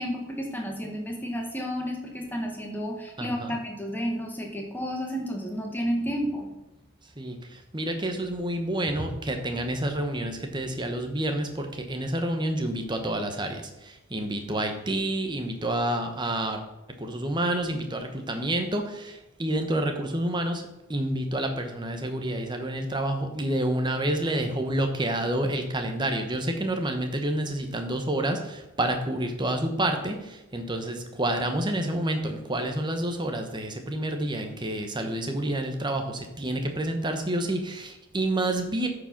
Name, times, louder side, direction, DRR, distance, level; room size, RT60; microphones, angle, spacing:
voice 1, 0.0-6.5, equal, 10° left, 1 dB, 1.3 m, -31 dB
voice 2, 3.2-3.6 7.2-16.6 17.0-20.6 20.9-38.9, right 1 dB, 20° right, 5 dB, 0.9 m, -29 dB
8.8 x 5.0 x 5.9 m, 0.95 s
head